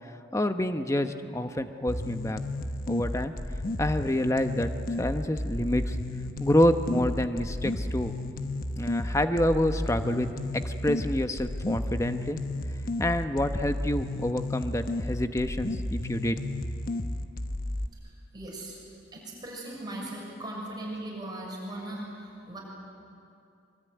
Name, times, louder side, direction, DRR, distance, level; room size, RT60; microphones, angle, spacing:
voice 1, 0.3-2.4 2.9-3.3 3.8-4.7 5.0-6.0 6.4-8.1 8.8-10.3 10.6-12.4 13.0-16.4, left 1 dB, 15° left, 8 dB, 1.0 m, -27 dB
sound 1, 1.9-17.9, left 1 dB, 50° left, 1.1 m, -33 dB
voice 2, 18.3-18.8 19.1-22.6, right 1 dB, 20° right, -3 dB, 6.6 m, -38 dB
24.0 x 23.5 x 9.4 m, 2.5 s
head